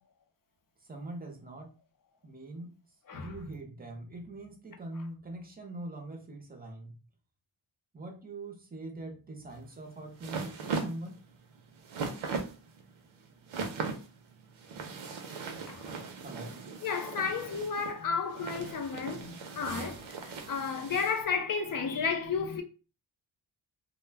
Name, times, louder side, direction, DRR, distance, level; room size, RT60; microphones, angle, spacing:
voice 1, 0.9-1.7 2.2-2.7 3.1-6.9 7.9-11.2 16.2-16.6, right 2 dB, 20° right, 0.6 m, -43 dB
sound 1, 9.5-21.2, right 4 dB, 75° right, 0.6 m, -39 dB
voice 2, 16.8-22.6, left 5 dB, 45° left, 0.5 m, -33 dB
2.1 x 2.1 x 3.2 m
wide cardioid pair, 120°, 47 cm